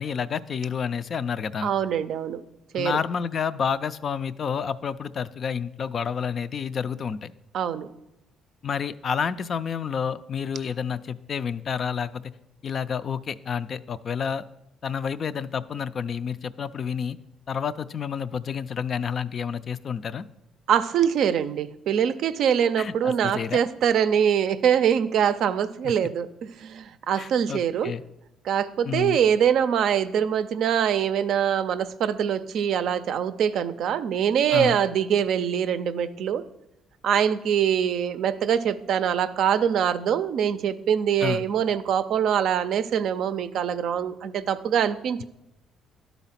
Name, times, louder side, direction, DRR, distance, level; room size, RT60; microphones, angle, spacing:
voice 1, 0.0-1.7 2.7-7.3 8.6-12.3 12.6-14.4 14.8-17.2 17.5-20.2 22.8-23.6 25.8-25.9 27.2-28.0 28.9-29.2 34.5-34.8 41.2-41.4, left 7 dB, 45° left, 14 dB, 0.3 m, -29 dB
voice 2, 1.6-2.4 2.7-3.0 7.5-7.9 20.7-27.9 28.5-36.4 37.0-45.2, right 8 dB, 70° right, 12 dB, 0.4 m, -24 dB
11.0 x 4.1 x 5.7 m, 0.88 s
cardioid pair, 95°, 0 cm